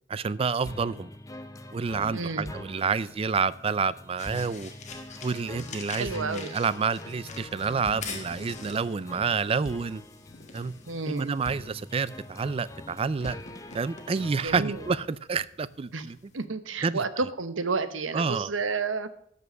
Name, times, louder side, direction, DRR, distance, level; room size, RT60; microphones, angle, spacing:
voice 1, 0.1-1.1 1.7-4.7 5.2-10.0 10.5-10.7 11.1-13.4 13.7-16.2 16.8-17.0 18.1-18.5, right 5 dB, 30° right, 0.3 m, -29 dB
sound 1, 0.7-15.1, left 1 dB, 15° left, 0.6 m, -44 dB
voice 2, 2.1-2.5 6.0-6.5 10.9-11.3 14.4-14.8 15.9-16.1 16.3-19.1, right 4 dB, 85° right, 0.9 m, -31 dB
sound 2, 2.9-16.4, left 5 dB, 35° left, 1.4 m, -46 dB
12.5 x 5.5 x 6.9 m
head